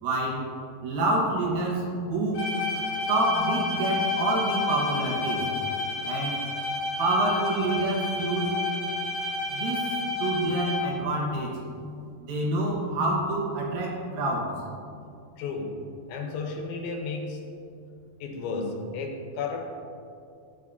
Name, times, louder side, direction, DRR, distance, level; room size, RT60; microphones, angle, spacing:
voice 1, 0.0-0.4 0.8-2.5 3.1-5.4 6.0-6.4 7.0-8.6 9.5-9.8 10.2-11.6 12.2-14.5, right 2 dB, 70° right, -3 dB, 2.7 m, -27 dB
Bowed string instrument, 2.3-11.1, left 3 dB, 55° left, 2.0 m, -30 dB
voice 2, 15.4-15.8 16.1-17.6 18.2-19.6, left 4 dB, 90° left, 2 dB, 3.0 m, -33 dB
11.0 x 7.2 x 2.7 m, 2.5 s
omnidirectional pair, 5.3 m